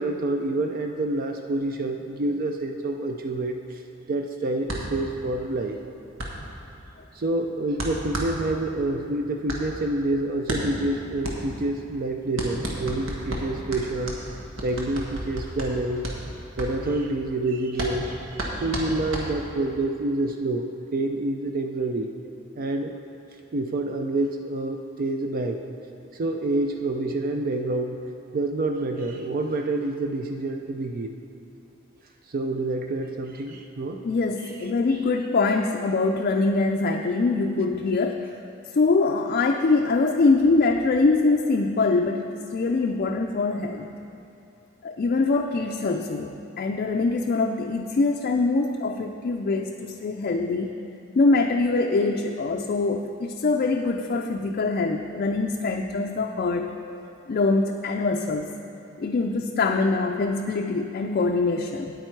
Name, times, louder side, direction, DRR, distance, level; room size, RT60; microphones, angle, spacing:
voice 1, 0.0-3.8 4.1-5.8 7.1-14.2 14.6-16.1 16.6-22.1 22.6-22.9 23.5-25.6 26.1-28.0 28.3-31.1 32.3-34.0 34.9-35.0, right 2 dB, 45° right, 4 dB, 0.4 m, -27 dB
sound 1, 4.6-19.8, right 1 dB, 80° right, 1.4 m, -33 dB
voice 2, 34.0-38.3 38.7-43.9 44.8-50.7 51.2-56.7 57.3-58.5 59.0-61.9, left 3 dB, 45° left, 2 dB, 0.4 m, -23 dB
9.2 x 8.7 x 4.6 m, 2.7 s
head